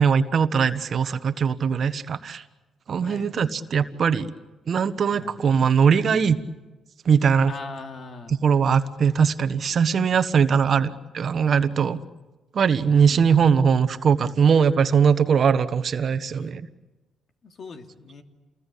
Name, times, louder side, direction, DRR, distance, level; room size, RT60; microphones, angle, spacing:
voice 1, 0.0-2.4 2.9-4.3 4.7-6.4 7.0-7.5 8.4-12.0 12.5-16.6, right 6 dB, 55° right, 11 dB, 1.3 m, -20 dB
voice 2, 3.0-3.3 5.1-5.3 7.5-8.4 12.9-13.5 16.4-16.5 17.4-18.2, left 3 dB, 55° left, 4 dB, 2.6 m, -40 dB
28.0 x 21.0 x 8.5 m, 1.2 s
cardioid pair, 90°, 0 cm